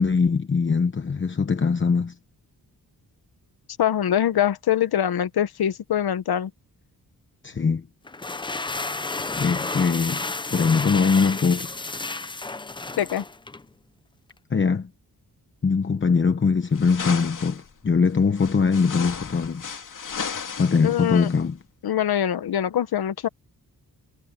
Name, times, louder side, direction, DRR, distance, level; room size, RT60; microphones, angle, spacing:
voice 1, 0.0-2.1 7.4-7.9 9.4-10.2 10.5-11.7 14.5-14.9 15.6-19.6 20.6-21.6, left 5 dB, 30° left, 0.9 m, -22 dB
voice 2, 3.8-6.5 13.0-13.2 20.8-21.3 21.8-23.3, left 10 dB, 80° left, 1.0 m, -23 dB
sound 1, 8.1-13.7, left 3 dB, 15° left, 0.5 m, -31 dB
sound 2, 16.7-17.7 18.4-21.4, left 6 dB, 55° left, 3.1 m, -34 dB
wide cardioid pair, 150°, 37 cm